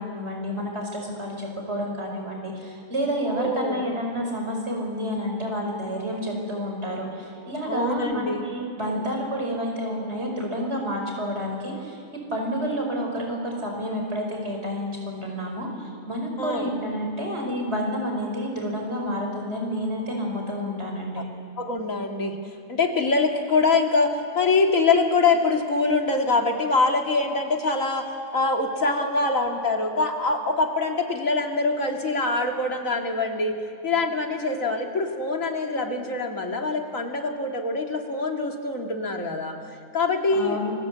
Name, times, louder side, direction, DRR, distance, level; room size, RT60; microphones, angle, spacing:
voice 1, 0.0-12.0 12.3-21.3 40.3-40.7, equal, 55° right, 1 dB, 5.3 m, -29 dB
voice 2, 3.2-3.8 7.6-8.4 8.8-9.0 16.4-16.7 21.2-21.3 21.6-22.4 22.7-33.6 33.8-39.6 39.9-40.6, left 3 dB, 85° left, 2 dB, 2.8 m, -24 dB
27.5 x 24.5 x 8.2 m, 2.4 s
omnidirectional pair, 1.4 m